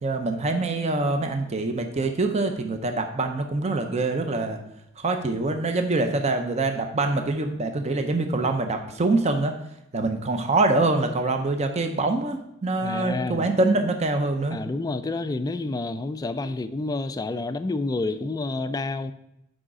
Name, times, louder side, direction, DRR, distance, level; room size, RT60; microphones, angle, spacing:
voice 1, 0.0-4.6 5.0-9.6 9.9-14.6, right 2 dB, 35° right, 5 dB, 0.5 m, -25 dB
voice 2, 12.8-13.5 14.5-19.1, left 3 dB, 20° left, 11 dB, 0.3 m, -29 dB
6.3 x 4.9 x 4.7 m, 0.82 s
head